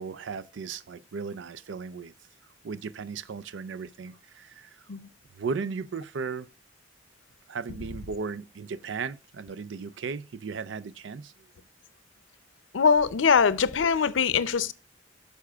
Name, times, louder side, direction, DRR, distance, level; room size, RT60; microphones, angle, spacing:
voice 1, 0.0-2.1 2.6-4.9 5.4-6.5 7.5-11.5, right 5 dB, 75° right, 0.4 m, -36 dB
voice 2, 12.7-14.7, left 6 dB, 85° left, 0.5 m, -22 dB
9.7 x 6.8 x 2.3 m
head